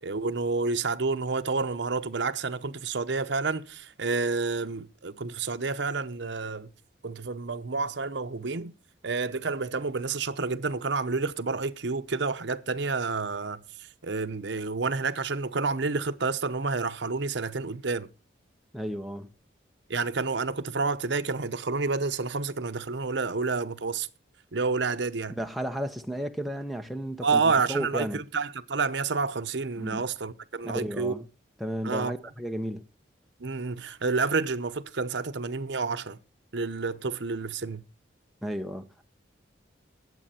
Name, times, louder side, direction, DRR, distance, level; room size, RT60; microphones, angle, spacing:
voice 1, 0.0-6.7 7.0-8.7 9.0-13.6 14.0-18.1 19.9-24.1 24.5-25.4 27.2-31.1 31.8-32.1 33.4-36.2 36.5-37.8, right 4 dB, 70° right, 0.9 m, -29 dB
voice 2, 18.7-19.3 25.4-28.2 29.8-30.0 30.6-31.3 31.6-32.8 38.4-39.1, equal, ahead, 0.9 m, -33 dB
19.0 x 7.7 x 4.3 m
head